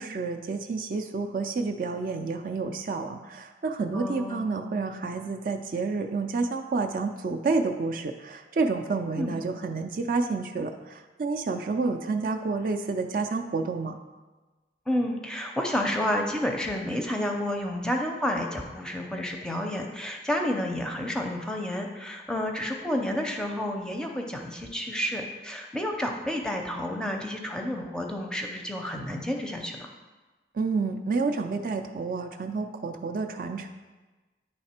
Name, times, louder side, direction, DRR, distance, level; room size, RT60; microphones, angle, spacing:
voice 1, 0.0-14.0 30.5-33.7, right 4 dB, 50° right, 4 dB, 0.4 m, -29 dB
voice 2, 3.9-4.5 9.2-9.4 14.9-29.9, left 1 dB, 5° left, 2 dB, 0.5 m, -30 dB
9.4 x 3.3 x 4.3 m, 1.2 s
head